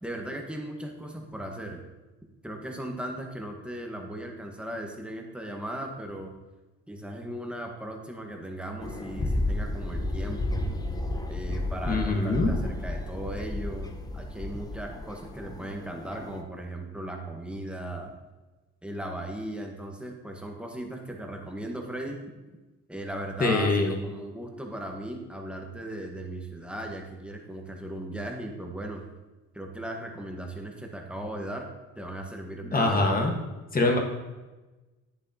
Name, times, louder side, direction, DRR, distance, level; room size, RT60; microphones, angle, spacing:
voice 1, 0.0-1.8 2.4-6.3 6.9-10.7 11.3-18.1 18.8-22.2 22.9-29.0 29.5-31.7 32.0-33.1, right 1 dB, 5° right, 1 dB, 1.2 m, -37 dB
sound 1, 8.8-16.4, left 1 dB, 15° left, 0.6 m, -32 dB
voice 2, 11.9-12.5 23.4-23.9 32.7-33.3 33.7-34.0, left 2 dB, 30° left, 2 dB, 1.4 m, -23 dB
9.4 x 7.0 x 2.8 m, 1.2 s
cardioid pair, 105°, 30 cm